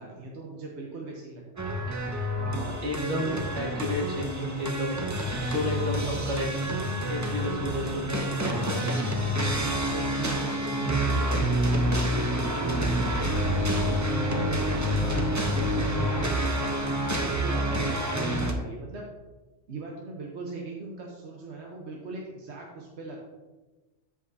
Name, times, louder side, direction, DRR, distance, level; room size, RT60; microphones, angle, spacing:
voice 1, 0.0-1.7 9.8-11.4 11.8-16.7 17.1-19.1 19.7-23.2, right 3 dB, 65° right, -1 dB, 1.2 m, -40 dB
sound 1, 1.6-18.5, equal, 20° right, 0.5 m, -28 dB
voice 2, 2.4-5.0 5.4-6.5 7.1-8.8, left 1 dB, 80° right, -3 dB, 2.5 m, -32 dB
sound 2, 5.2-11.6, left 3 dB, 35° left, 0.8 m, -41 dB
13.0 x 5.0 x 2.7 m, 1.2 s
omnidirectional pair, 1.2 m